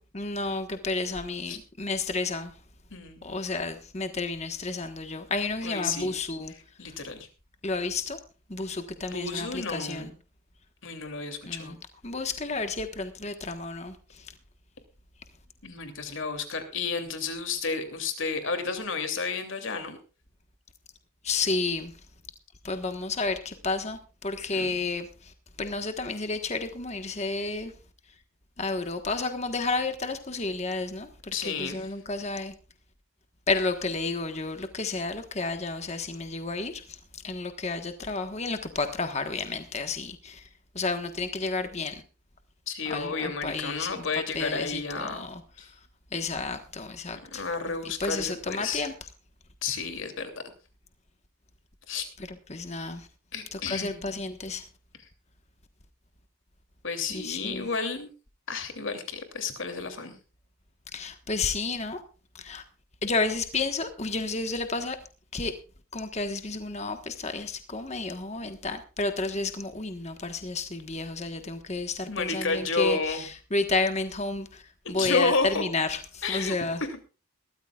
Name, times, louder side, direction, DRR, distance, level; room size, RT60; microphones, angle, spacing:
voice 1, 0.1-2.5 3.2-6.5 6.8-7.0 7.6-8.2 8.5-10.1 11.5-11.8 12.0-14.3 21.2-22.0 22.6-27.7 28.6-32.5 33.5-40.5 40.7-42.0 42.8-44.1 44.3-45.4 46.1-47.4 47.8-48.9 52.3-53.1 53.5-54.7 57.1-57.7 60.9-62.0 62.3-62.6 63.0-65.0 65.3-65.6 65.9-76.8, left 3 dB, 30° left, 1.3 m, -31 dB
voice 2, 2.9-3.3 5.6-6.1 6.8-7.3 9.0-10.1 10.8-11.7 15.6-20.0 24.5-24.8 31.3-31.9 42.7-45.3 45.6-45.7 47.3-48.9 49.6-50.3 51.9-52.1 53.3-54.1 56.8-58.1 58.5-60.2 72.1-73.2 74.8-75.6 76.2-76.9, left 4 dB, 65° left, 2.9 m, -31 dB
21.5 x 14.0 x 2.4 m
head